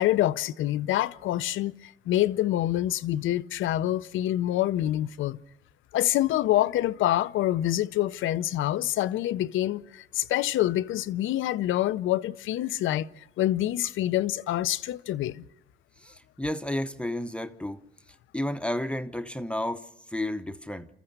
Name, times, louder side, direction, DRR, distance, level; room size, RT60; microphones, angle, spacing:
voice 1, 0.0-5.4 5.9-15.4, left 13 dB, 80° left, 0.6 m, -26 dB
voice 2, 16.0-17.8 18.3-20.9, left 1 dB, 5° left, 0.9 m, -32 dB
28.5 x 14.5 x 6.7 m
cardioid pair, 90°, 20 cm